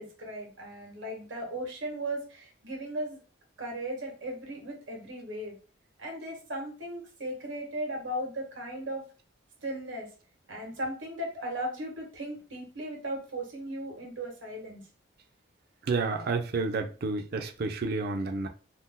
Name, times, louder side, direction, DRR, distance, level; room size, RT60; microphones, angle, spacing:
voice 1, 0.0-3.2 3.6-5.6 6.0-9.0 9.6-10.1 10.5-14.8, right 1 dB, 85° right, 0 dB, 1.2 m, -37 dB
voice 2, 15.9-18.5, right 3 dB, 55° right, 5 dB, 0.5 m, -30 dB
2.8 x 2.0 x 3.5 m, 0.36 s
head